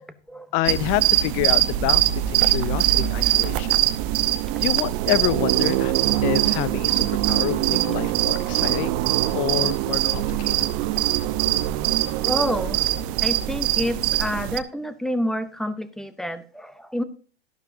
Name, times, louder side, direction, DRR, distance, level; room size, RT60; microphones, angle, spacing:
voice 1, 0.0-0.5 12.2-12.8 13.2-17.0, equal, ahead, 12 dB, 0.8 m, -28 dB
voice 2, 0.5-3.8 4.6-5.9 6.2-9.0 9.3-10.7, left 16 dB, 30° left, 19 dB, 0.4 m, -27 dB
sound 1, 0.6-14.6, right 14 dB, 40° right, 0.9 m, -22 dB
12.0 x 11.5 x 2.7 m, 0.39 s
hypercardioid pair, 130°, 31 cm